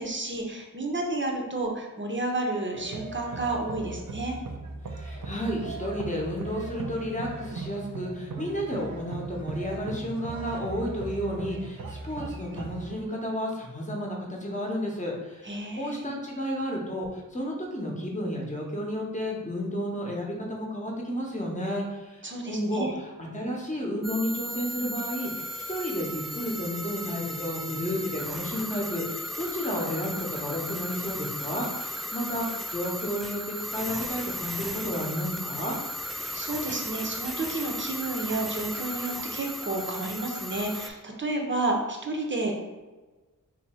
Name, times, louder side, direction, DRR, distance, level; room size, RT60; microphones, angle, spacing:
voice 1, 0.0-4.4 15.4-16.1 22.2-22.9 36.1-42.5, right 2 dB, 35° right, 1 dB, 0.7 m, -31 dB
sound 1, 2.7-13.0, right 3 dB, 80° right, 0.6 m, -38 dB
voice 2, 4.9-35.8, equal, 20° left, -1 dB, 0.9 m, -32 dB
sound 2, 24.0-40.9, equal, ahead, 0.4 m, -35 dB
2.9 x 2.7 x 4.3 m, 1.2 s
wide cardioid pair, 55°, 34 cm